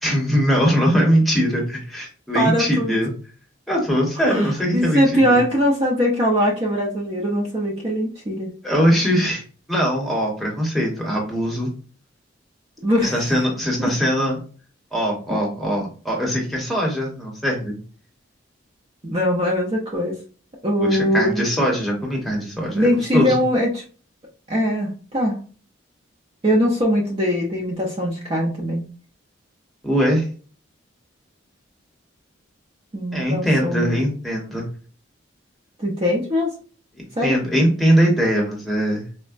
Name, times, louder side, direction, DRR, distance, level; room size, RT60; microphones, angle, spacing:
voice 1, 0.0-3.1 3.7-5.4 8.6-9.4 9.7-11.7 13.0-14.4 14.9-17.8 20.8-23.4 29.8-30.3 33.1-34.7 37.0-39.0, equal, ahead, -2 dB, 0.9 m, -21 dB
voice 2, 2.3-3.0 4.3-4.5 4.7-8.5 12.8-13.2 13.8-13.9 19.0-20.2 20.6-21.5 22.7-23.8 24.5-25.4 26.4-28.8 32.9-33.9 35.8-36.5 37.2-37.4, equal, 30° right, -2 dB, 0.6 m, -21 dB
4.3 x 2.1 x 2.4 m, 0.39 s
head